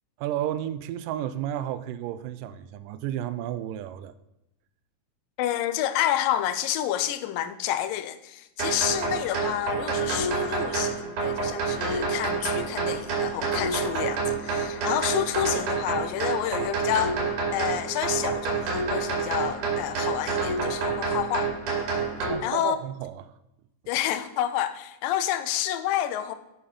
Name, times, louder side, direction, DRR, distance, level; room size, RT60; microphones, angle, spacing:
voice 1, 0.2-4.1 22.3-23.3, right 11 dB, 85° right, 2.1 m, -32 dB
voice 2, 5.4-17.2 17.5-21.5 22.4-22.8 23.9-26.4, left 12 dB, 90° left, 2.4 m, -29 dB
sound 1, 8.6-22.3, right 4 dB, 65° right, 3.8 m, -28 dB
8.5 x 7.0 x 5.2 m
omnidirectional pair, 3.9 m